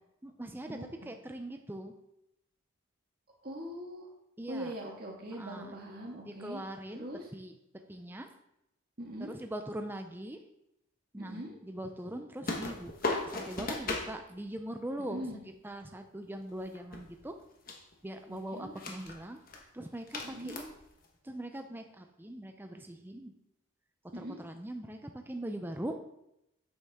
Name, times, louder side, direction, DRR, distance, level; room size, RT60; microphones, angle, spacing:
voice 1, 0.2-1.9 4.4-4.7 5.3-5.8 6.2-8.4 9.2-10.4 11.1-15.4 15.6-17.4 18.0-20.8 21.2-23.4 24.0-26.0, right 1 dB, 10° right, 6 dB, 0.5 m, -42 dB
voice 2, 3.4-4.1 4.5-6.6 6.9-7.2 9.0-9.4 11.2-11.5 15.1-15.4 18.3-18.7 20.2-20.7 24.1-24.4, equal, 45° right, -1 dB, 1.8 m, -41 dB
sound 1, 12.4-14.1 16.5-17.4 17.7-17.9 18.6-19.2 19.5-19.6 20.1-21.0, left 3 dB, 40° left, 1.3 m, -36 dB
8.2 x 8.1 x 3.6 m, 0.83 s
head